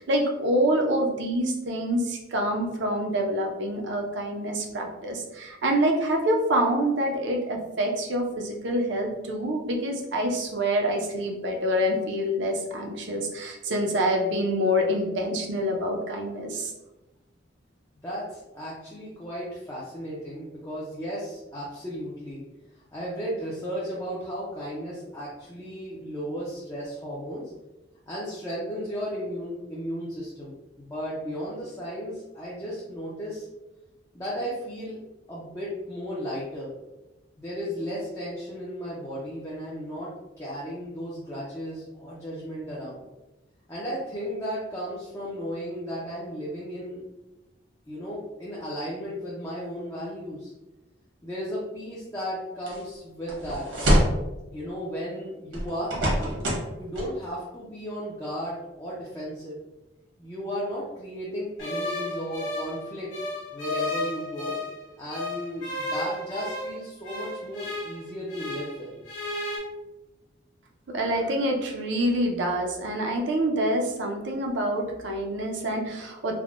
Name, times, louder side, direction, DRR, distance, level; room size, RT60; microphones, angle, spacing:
voice 1, 0.0-16.7 70.9-76.3, equal, 65° right, 2 dB, 0.5 m, -26 dB
voice 2, 18.0-22.4 22.9-27.5 28.1-33.5 34.1-35.0 35.3-36.7 37.4-40.1 40.4-43.0 43.7-47.0 47.9-50.5 51.2-53.6 54.5-56.4 56.8-59.6 60.2-63.1 63.5-64.6 65.0-68.9, equal, 15° left, -7 dB, 0.4 m, -35 dB
sound 1, 52.7-52.8 53.3-54.2 55.5-56.7 56.9-57.1, equal, 85° right, 1.1 m, -24 dB
sound 2, 61.6-64.8 65.1-68.8 69.0-69.6, left 1 dB, 80° left, 1.3 m, -33 dB
3.4 x 2.1 x 2.4 m, 1.0 s
head